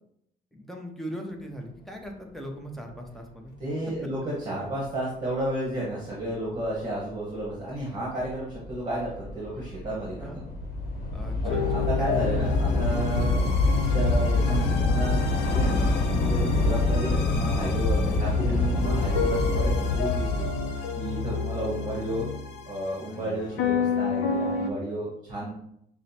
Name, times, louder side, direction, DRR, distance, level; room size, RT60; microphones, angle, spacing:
voice 1, 0.5-3.5 10.1-10.4 11.1-11.9, equal, ahead, 1 dB, 0.7 m, -39 dB
voice 2, 3.6-10.4 11.4-13.4 13.8-20.5 21.0-22.3 22.7-25.5, right 1 dB, 25° right, -5 dB, 1.0 m, -32 dB
Train / Subway metro underground, 6.6-6.7 7.5-7.8 8.1-20.6, left 2 dB, 60° left, 0.9 m, -26 dB
sound 1, 11.4-24.7, left 5 dB, 80° left, 0.5 m, -30 dB
5.8 x 2.1 x 2.7 m, 0.75 s
cardioid pair, 110°, 17 cm